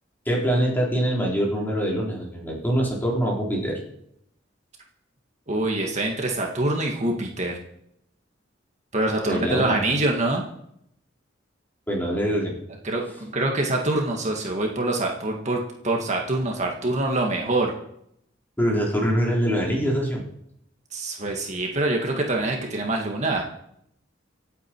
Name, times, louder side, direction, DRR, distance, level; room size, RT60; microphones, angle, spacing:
voice 1, 0.3-3.8 9.3-9.8 11.9-12.5 18.6-20.2, equal, 10° left, -3 dB, 4.1 m, -24 dB
voice 2, 5.5-7.6 8.9-10.4 12.8-17.7 20.9-23.4, right 2 dB, 40° right, 1 dB, 1.9 m, -25 dB
25.5 x 8.8 x 4.6 m, 0.74 s
head